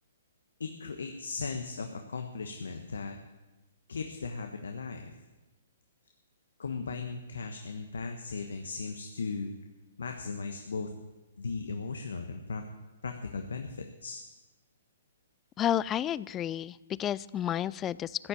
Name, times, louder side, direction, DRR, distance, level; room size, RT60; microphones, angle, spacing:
voice 1, 0.6-3.1 3.9-5.1 6.6-9.5 10.0-10.9 11.4-12.6 13.0-14.2, left 4 dB, 80° left, 5 dB, 1.3 m, -37 dB
voice 2, 15.6-18.3, left 11 dB, 20° left, 20 dB, 0.4 m, -31 dB
15.0 x 7.1 x 9.2 m, 1.1 s
hypercardioid pair, 135°, 0 cm